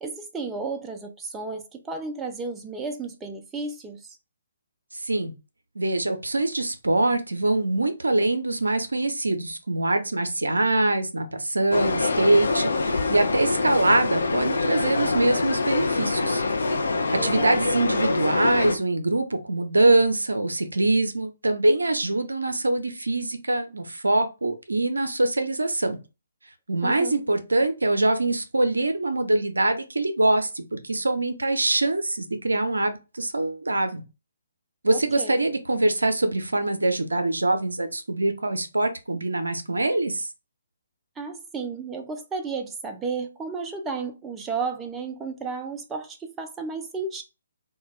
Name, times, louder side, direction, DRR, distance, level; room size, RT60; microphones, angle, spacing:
voice 1, 0.0-4.2 17.2-17.6 26.8-27.2 35.2-35.4 41.2-47.2, right 4 dB, 10° right, 0.3 m, -33 dB
voice 2, 4.9-5.3 5.8-16.4 17.1-26.0 26.7-34.0 34.8-40.3, right 2 dB, 75° right, 0.5 m, -24 dB
sound 1, 11.7-18.8, left 3 dB, 65° left, 0.4 m, -25 dB
2.3 x 2.2 x 3.1 m
figure-of-eight pair, 135°, 0 cm